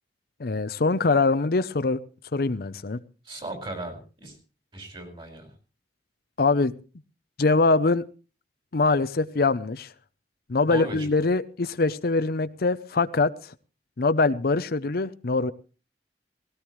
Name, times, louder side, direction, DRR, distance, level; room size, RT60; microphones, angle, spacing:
voice 1, 0.4-2.0 2.3-3.0 6.4-6.7 7.4-8.0 8.7-9.9 10.5-13.5 14.0-15.5, left 3 dB, 60° left, 12 dB, 0.7 m, -23 dB
voice 2, 3.2-4.4 4.7-5.5 10.6-11.1, right 2 dB, 30° right, 6 dB, 4.9 m, -36 dB
19.0 x 17.0 x 3.1 m, 0.34 s
head